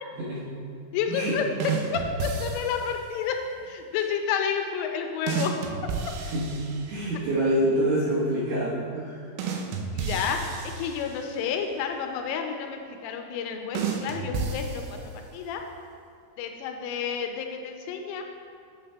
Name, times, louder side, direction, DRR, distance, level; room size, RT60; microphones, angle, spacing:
voice 1, 0.9-1.4 1.9-3.4 3.7-5.5 9.9-15.0 15.3-15.6 16.4-18.3, left 7 dB, 85° left, 4 dB, 3.0 m, -30 dB
sound 1, 1.6-3.0 5.3-7.2 9.4-11.5 13.8-15.4, right 5 dB, 85° right, 3.3 m, -32 dB
voice 2, 6.2-9.3, right 1 dB, 70° right, -8 dB, 2.6 m, -26 dB
11.0 x 7.9 x 2.2 m, 2.3 s
omnidirectional pair, 5.8 m